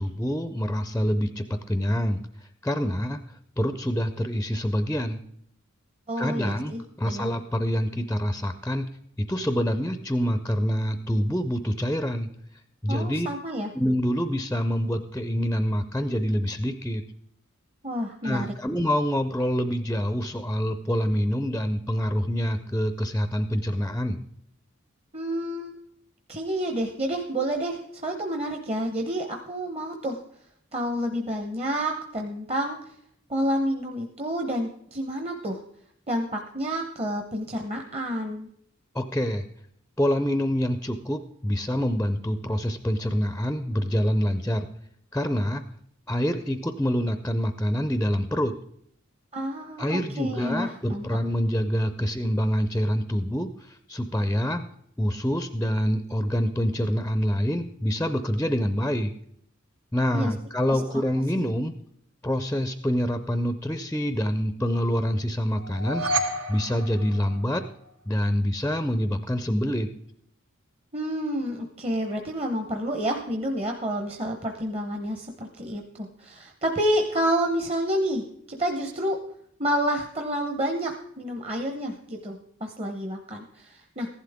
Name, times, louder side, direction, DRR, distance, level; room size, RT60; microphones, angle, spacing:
voice 1, 0.0-3.2 3.6-5.2 6.2-8.9 9.2-12.3 12.8-13.3 13.7-17.0 18.2-24.2 38.9-39.4 40.0-44.7 45.1-45.6 46.1-48.6 49.8-54.6 55.0-59.1 59.9-61.7 62.2-66.0 66.5-67.6 68.1-69.9, equal, 10° left, 10 dB, 0.5 m, -26 dB
voice 2, 6.1-7.3 12.9-13.7 17.8-18.5 25.1-25.7 26.3-30.2 30.7-32.9 33.3-35.6 36.1-38.5 49.3-51.1 60.1-60.3 60.7-61.0 70.9-79.2 79.6-84.1, equal, 30° right, 4 dB, 0.9 m, -29 dB
sound 1, 65.6-67.9, right 1 dB, 90° right, 2.0 m, -30 dB
15.0 x 11.5 x 3.6 m, 0.71 s
head